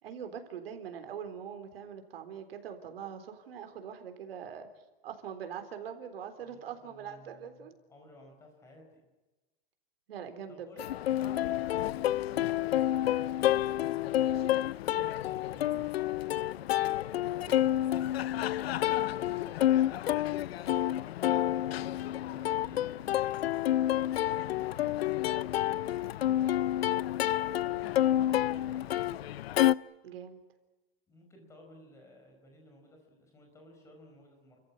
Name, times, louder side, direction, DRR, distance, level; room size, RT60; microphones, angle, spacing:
voice 1, 0.0-4.7 5.0-7.8 10.1-10.7 14.9-15.1 17.5-17.7 26.3-26.7 30.0-30.4, right 8 dB, 75° right, 7 dB, 3.8 m, -43 dB
voice 2, 6.4-9.1 10.5-12.6 15.1-16.5 22.3-23.5 27.2-29.2 31.1-34.6, left 1 dB, 10° left, 2 dB, 4.7 m, -57 dB
Plucked string instrument, 10.8-29.7, left 13 dB, 85° left, 0.7 m, -29 dB
30.0 x 14.5 x 9.7 m, 1.2 s
supercardioid pair, 175°, 30 cm